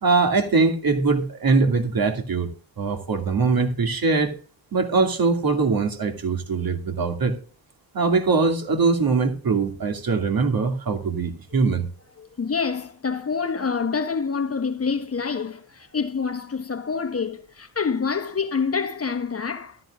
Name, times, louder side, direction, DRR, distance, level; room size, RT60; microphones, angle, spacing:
voice 1, 0.0-2.5 2.8-4.3 4.7-7.4 7.9-11.8, right 4 dB, 50° right, 2.5 m, -22 dB
voice 2, 12.2-19.8, left 5 dB, 30° left, 1.3 m, -27 dB
14.0 x 13.5 x 2.5 m
cardioid pair, 80°, 45 cm